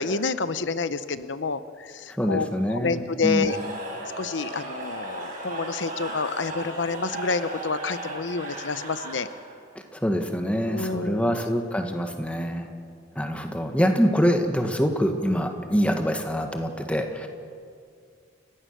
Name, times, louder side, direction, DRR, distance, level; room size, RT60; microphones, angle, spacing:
voice 1, 0.0-3.6 4.2-9.3 10.6-11.4, left 4 dB, 85° left, 13 dB, 0.8 m, -28 dB
voice 2, 2.2-3.5 9.9-12.7 13.1-17.3, equal, 5° left, 5 dB, 1.6 m, -25 dB
Cheering / Crowd, 3.2-9.6, right 2 dB, 45° right, 6.3 m, -36 dB
29.5 x 15.5 x 6.7 m, 2.2 s
head